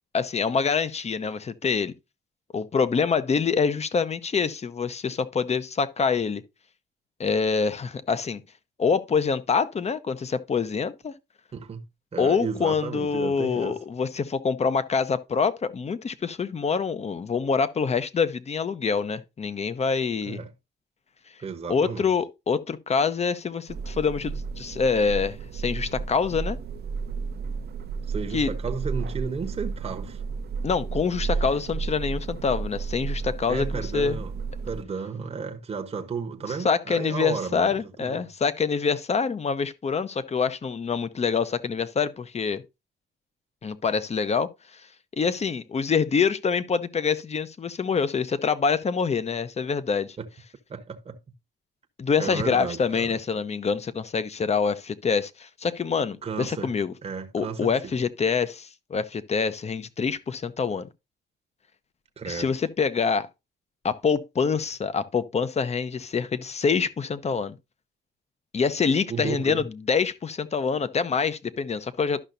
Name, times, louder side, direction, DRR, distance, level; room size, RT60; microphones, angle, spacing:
voice 1, 0.1-1.9 2.5-6.4 7.2-8.4 8.8-11.1 12.2-20.4 21.7-26.6 28.3-28.5 30.6-34.2 36.6-42.6 43.6-44.8 45.2-50.2 52.0-56.9 57.3-60.9 62.3-63.3 63.8-67.6 68.5-72.2, left 5 dB, 35° left, 0.7 m, -26 dB
voice 2, 11.5-11.8 12.1-13.8 20.3-20.5 21.4-22.1 28.1-30.2 33.5-34.4 34.6-38.3 50.2-50.3 50.7-51.2 52.2-53.2 56.2-56.7 57.0-58.0 62.2-62.5 69.1-69.6, right 5 dB, 30° right, 1.0 m, -33 dB
sound 1, 23.7-34.8, right 5 dB, 55° right, 0.6 m, -32 dB
12.0 x 5.7 x 2.6 m
cardioid pair, 90°, 20 cm